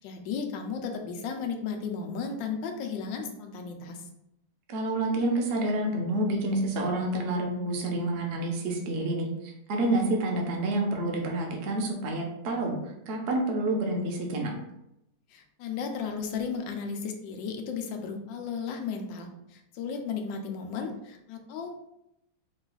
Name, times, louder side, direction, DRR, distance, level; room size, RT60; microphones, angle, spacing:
voice 1, 0.0-4.1 15.3-21.8, left 5 dB, 85° left, 4 dB, 1.4 m, -34 dB
voice 2, 4.7-9.3 9.7-12.8 13.1-14.5, right 1 dB, 50° right, 1 dB, 0.7 m, -28 dB
4.8 x 2.4 x 3.8 m, 0.85 s
omnidirectional pair, 1.9 m